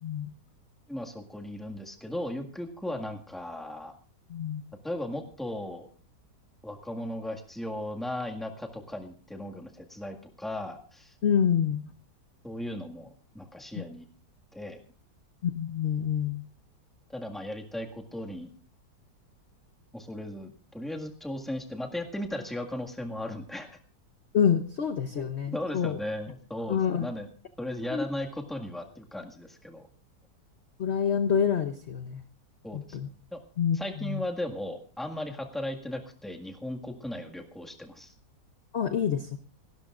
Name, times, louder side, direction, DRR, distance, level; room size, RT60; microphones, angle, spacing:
voice 1, 0.9-3.9 4.8-5.9 6.6-11.1 12.4-13.1 13.3-14.0 14.5-14.8 17.1-18.5 19.9-23.8 25.1-25.2 25.5-27.3 27.6-29.9 32.6-33.0 33.3-33.4 33.7-38.1, left 1 dB, ahead, 2 dB, 1.6 m, -36 dB
voice 2, 4.3-4.6 11.2-11.8 13.7-13.8 15.4-16.4 24.3-26.0 26.7-27.1 27.9-28.0 30.8-32.2 32.7-33.1 33.6-34.2 38.7-39.4, left 7 dB, 50° left, 8 dB, 0.9 m, -27 dB
27.5 x 12.5 x 2.5 m, 0.41 s
omnidirectional pair, 1.8 m